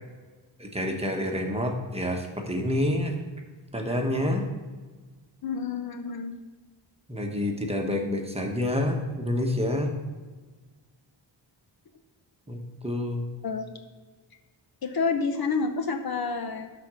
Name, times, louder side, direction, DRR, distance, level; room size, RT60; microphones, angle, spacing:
voice 1, 0.6-3.1 3.7-4.5 7.1-9.9 12.5-13.2, left 1 dB, 15° right, 2 dB, 1.2 m, -28 dB
voice 2, 5.4-6.4 13.4-13.7 14.8-16.7, left 4 dB, 55° left, 7 dB, 0.8 m, -29 dB
11.5 x 4.3 x 6.2 m, 1.4 s
wide cardioid pair, 125°, 45 cm